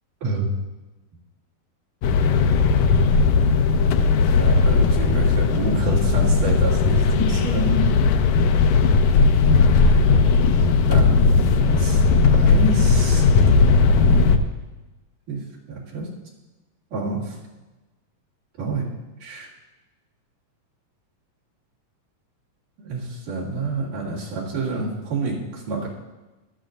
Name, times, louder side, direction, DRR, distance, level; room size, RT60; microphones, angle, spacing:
voice 1, 0.2-0.5 4.2-7.9 10.8-11.3 11.6-13.2 15.3-15.4 15.7-16.1 16.9-17.3 18.6-18.8 19.2-19.5 22.8-25.9, right 2 dB, 65° right, -6 dB, 3.7 m, -28 dB
sound 1, 2.0-14.4, left 4 dB, 85° left, 1.8 m, -17 dB
15.0 x 12.0 x 2.6 m, 1.1 s
omnidirectional pair, 4.1 m